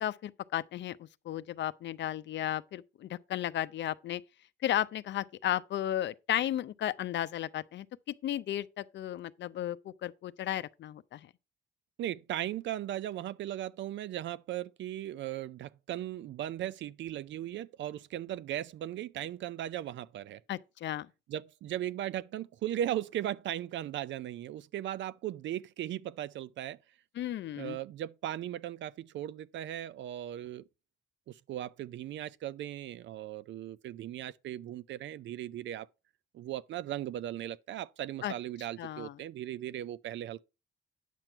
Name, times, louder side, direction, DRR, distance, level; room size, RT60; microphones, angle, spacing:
voice 1, 0.0-4.2 4.6-7.9 8.2-11.2 20.5-21.1 27.2-27.8 38.2-38.3 38.8-39.1, left 12 dB, 65° left, 0.6 m, -34 dB
voice 2, 12.0-20.4 21.3-26.8 27.6-30.6 31.3-35.9 36.3-40.4, right 12 dB, 70° right, 0.5 m, -37 dB
9.2 x 6.0 x 4.3 m
cardioid pair, 90°, 20 cm